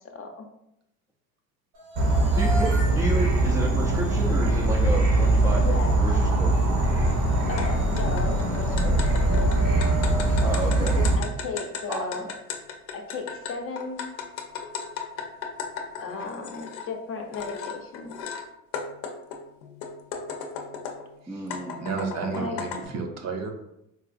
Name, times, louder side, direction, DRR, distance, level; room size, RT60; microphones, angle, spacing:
voice 1, 0.1-0.5 5.6-5.9 7.5-9.5 10.9-12.3 12.9-14.1 16.0-18.4 22.3-22.6, left 4 dB, 40° left, 3 dB, 0.6 m, -35 dB
sound 1, 1.7-11.9, equal, 85° right, 1.2 m, -39 dB
Insect / Frog, 2.0-11.2, right 2 dB, 70° right, 1.0 m, -22 dB
voice 2, 2.3-6.6 10.4-11.0 11.9-12.3 21.3-21.8 22.3-22.5, right 1 dB, 10° right, -2 dB, 0.4 m, -31 dB
sound 2, 7.6-7.7 8.0-16.9 17.3-18.4 18.7-21.1 21.5-22.9, left 6 dB, 85° left, 0.6 m, -36 dB
voice 3, 21.3-23.5, right 4 dB, 50° right, 4 dB, 0.6 m, -32 dB
3.8 x 2.3 x 2.5 m, 0.82 s
supercardioid pair, 95°, 34 cm